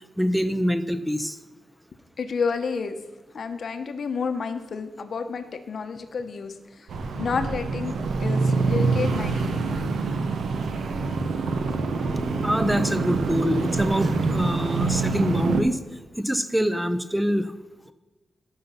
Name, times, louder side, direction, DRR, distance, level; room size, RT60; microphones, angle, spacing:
voice 1, 0.2-1.4 12.4-15.8 16.2-17.5, equal, ahead, 11 dB, 0.5 m, -25 dB
voice 2, 2.2-3.0 3.3-6.5 7.2-7.9 8.2-9.5, left 5 dB, 50° left, 8 dB, 0.9 m, -30 dB
sound 1, 6.9-15.6, right 4 dB, 70° right, 0.9 m, -25 dB
13.0 x 5.7 x 5.7 m, 1.2 s
wide cardioid pair, 150°, 0 cm